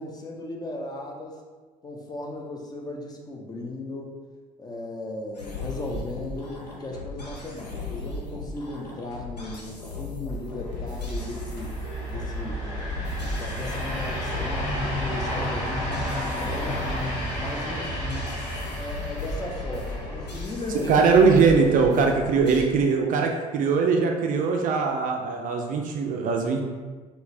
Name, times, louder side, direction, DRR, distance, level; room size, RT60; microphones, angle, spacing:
voice 1, 0.0-1.4 1.8-4.2 4.6-11.8 12.1-12.6 13.2-16.9 17.4-18.4 18.7-21.4, left 2 dB, 20° left, 0 dB, 0.5 m, -36 dB
sound 1, 5.4-22.6, left 2 dB, 85° left, 0.4 m, -36 dB
sound 2, 10.6-22.6, equal, 70° left, 1.2 m, -32 dB
voice 2, 20.9-26.6, right 5 dB, 40° right, 2 dB, 0.4 m, -21 dB
3.8 x 2.1 x 2.6 m, 1.4 s
figure-of-eight pair, 55°, 20 cm